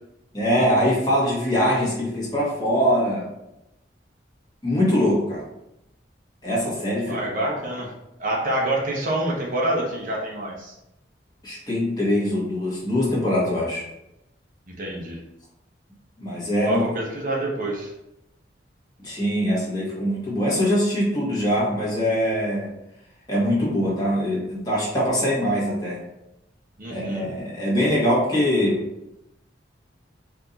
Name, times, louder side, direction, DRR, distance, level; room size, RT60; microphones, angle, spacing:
voice 1, 0.3-3.3 4.6-5.4 6.4-7.2 7.5-7.6 11.4-13.8 16.2-16.9 19.0-22.7 23.3-26.0 26.9-28.8, equal, 20° left, -6 dB, 1.4 m, -23 dB
voice 2, 7.1-7.9 8.2-10.7 14.7-15.2 16.6-17.9 26.8-27.3, right 1 dB, 45° right, -2 dB, 0.8 m, -27 dB
4.5 x 2.7 x 3.9 m, 0.88 s
head